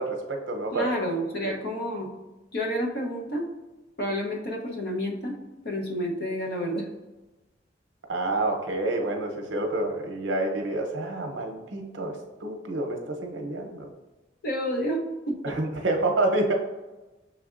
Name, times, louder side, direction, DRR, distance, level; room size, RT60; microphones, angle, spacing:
voice 1, 0.0-0.9 1.4-1.6 8.1-13.9 15.4-16.6, right 2 dB, 75° right, 3 dB, 0.7 m, -28 dB
voice 2, 0.7-2.1 2.5-3.5 4.0-5.4 5.6-6.9 14.4-15.0 15.3-15.5, equal, 60° left, 1 dB, 0.8 m, -29 dB
6.2 x 3.3 x 2.4 m, 1.1 s
head